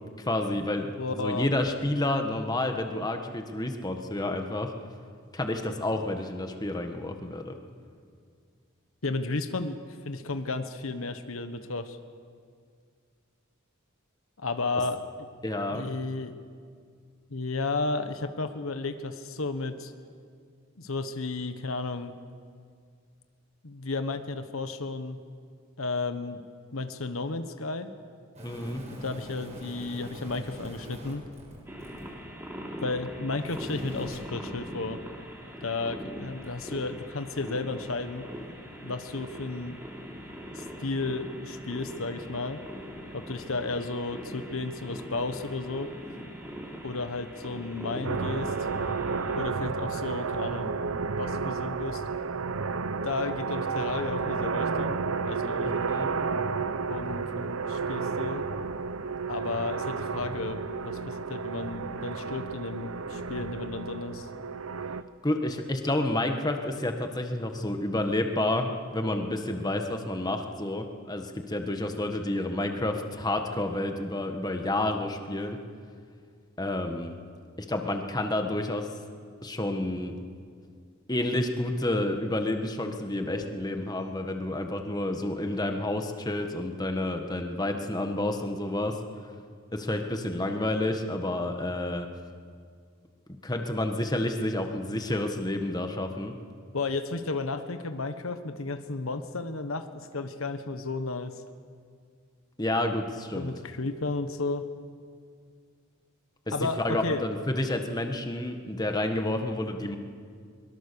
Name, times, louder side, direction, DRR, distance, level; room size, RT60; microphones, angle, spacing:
voice 1, 0.2-4.7 5.3-7.5 15.4-15.8 28.4-28.8 55.9-56.1 65.2-75.6 76.6-77.1 77.7-78.9 79.4-80.2 81.1-89.0 89.7-92.1 93.4-96.3 102.6-103.5 106.5-106.6 106.8-110.0, left 1 dB, 20° left, 5 dB, 1.5 m, -29 dB
voice 2, 1.0-1.5 9.0-9.8 10.0-12.0 14.4-15.1 15.7-16.3 17.3-19.9 20.8-22.1 23.6-25.2 25.8-26.4 26.7-27.9 28.9-31.3 32.8-35.0 35.6-38.2 38.8-39.8 40.5-42.6 43.1-45.9 46.8-48.5 49.4-50.7 51.2-52.0 52.6-52.7 53.0-55.7 56.9-58.5 59.3-64.3 96.7-101.4 103.3-104.6 106.5-107.2, left 3 dB, 75° left, 9 dB, 1.3 m, -33 dB
sound 1, 28.3-32.1 33.4-34.2 36.4-36.5, equal, 35° right, 6.5 m, -43 dB
sound 2, 31.6-49.4, equal, 10° right, 3.2 m, -41 dB
sound 3, 48.0-65.0, right 4 dB, 80° right, 0.8 m, -31 dB
23.5 x 22.5 x 7.0 m, 2.1 s
head